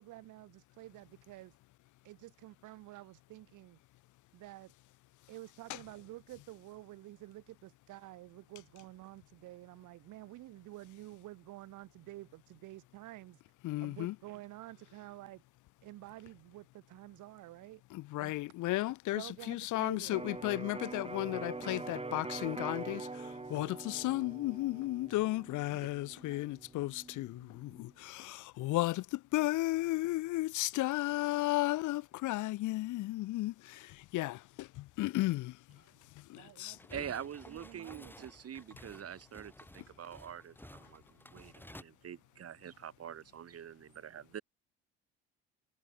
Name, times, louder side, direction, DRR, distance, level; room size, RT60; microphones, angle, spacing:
voice 1, 0.0-1.5 2.0-3.8 4.3-4.7 5.3-13.4 13.8-15.4 15.8-17.8 18.2-18.3 19.1-20.2 36.3-37.0 37.4-38.3, right 17 dB, 65° right, 4.9 m, -50 dB
voice 2, 13.6-14.2 17.9-35.6 36.2-36.8, left 17 dB, 65° left, 1.8 m, -34 dB
Electric guitar, 20.1-27.9, right 3 dB, 20° right, 6.4 m, -44 dB
sound 1, 36.7-41.8, left 1 dB, 5° left, 3.4 m, -54 dB
voice 3, 36.9-44.4, right 9 dB, 45° right, 4.0 m, -45 dB
hypercardioid pair, 65°, 33 cm